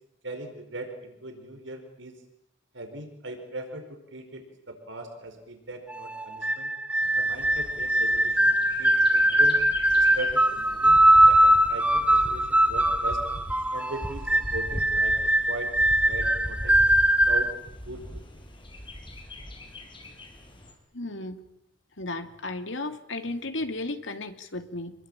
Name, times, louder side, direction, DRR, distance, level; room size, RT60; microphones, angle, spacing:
voice 1, 0.2-2.2 2.7-6.7 7.2-9.6 9.9-13.2 13.7-15.7 16.1-16.8 17.2-17.5 17.8-18.2, right 1 dB, 80° right, 5 dB, 4.9 m, -39 dB
sound 1, 5.9-17.5, right 1 dB, 5° right, 1.4 m, -21 dB
Bird, 7.0-20.7, left 1 dB, 25° left, 5.4 m, -40 dB
voice 2, 20.9-21.4 22.0-24.9, left 2 dB, 80° left, 7 dB, 2.6 m, -34 dB
27.0 x 22.0 x 9.0 m, 0.77 s
head